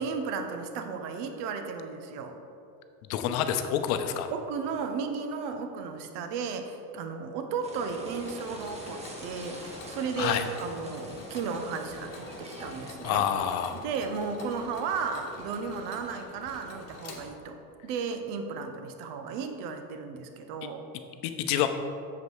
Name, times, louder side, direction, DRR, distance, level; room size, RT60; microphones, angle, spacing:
voice 1, 0.0-2.4 4.3-13.2 13.7-20.8, right 5 dB, 60° right, 6 dB, 1.0 m, -34 dB
voice 2, 3.1-4.3 10.2-10.4 13.0-13.8 20.6-20.7 21.2-21.7, left 9 dB, 70° left, 8 dB, 0.8 m, -27 dB
sound 1, 7.6-12.9, right 1 dB, 15° right, 1.2 m, -45 dB
Mechanisms, 8.2-17.7, left 3 dB, 35° left, 1.4 m, -46 dB
7.3 x 5.2 x 4.7 m, 2.6 s
supercardioid pair, 100°, 45 cm